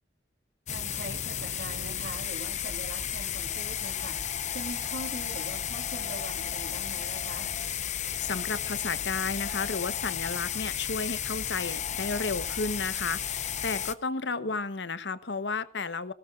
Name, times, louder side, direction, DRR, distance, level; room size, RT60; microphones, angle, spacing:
sound 1, 0.7-13.9, left 9 dB, 40° left, 0.8 m, -33 dB
voice 1, 0.7-4.2 4.5-7.5 14.3-14.5, right 2 dB, 75° right, 1 dB, 2.9 m, -42 dB
voice 2, 8.0-16.1, left 4 dB, 75° left, 14 dB, 1.0 m, -33 dB
20.5 x 17.5 x 2.5 m, 0.42 s
head